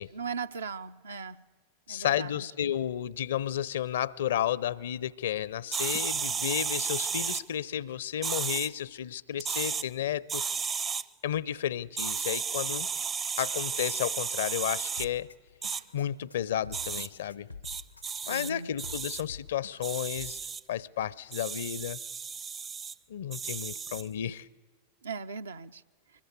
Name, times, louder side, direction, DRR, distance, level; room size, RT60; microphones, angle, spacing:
voice 1, 0.1-1.4 1.9-2.3 18.3-18.7 25.0-25.8, right 5 dB, 70° right, 0.7 m, -38 dB
voice 2, 1.9-10.4 11.2-12.9 13.4-15.3 15.9-17.5 18.3-20.4 20.7-22.0 23.1-24.5, left 10 dB, 60° left, 0.6 m, -32 dB
sound 1, 5.7-7.4 8.2-8.7 9.4-9.8 10.3-11.0 12.0-15.1 15.6-15.8 16.7-17.1 17.6-18.5 18.8-19.2 19.8-20.6 21.3-22.9 23.3-24.1, right 6 dB, 25° right, 0.6 m, -33 dB
sound 2, 11.4-14.3 16.4-16.6, right 2 dB, 85° right, 2.2 m, -56 dB
Drum kit, 15.0-20.3, left 4 dB, 85° left, 0.8 m, -47 dB
24.0 x 21.0 x 8.2 m
figure-of-eight pair, 90°, 0 cm